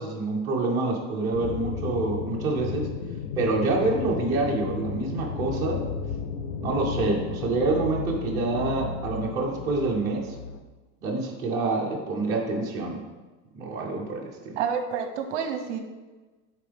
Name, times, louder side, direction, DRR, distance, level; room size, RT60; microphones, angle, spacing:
voice 1, 0.0-2.9 3.4-5.8 6.6-10.3 11.0-13.0 13.5-14.6, right 3 dB, 10° right, -5 dB, 0.6 m, -27 dB
sound 1, 1.3-10.6, left 6 dB, 70° left, 0.7 m, -34 dB
voice 2, 14.6-15.8, right 7 dB, 55° right, 6 dB, 0.8 m, -29 dB
9.3 x 3.9 x 3.4 m, 1.3 s
supercardioid pair, 175°, 41 cm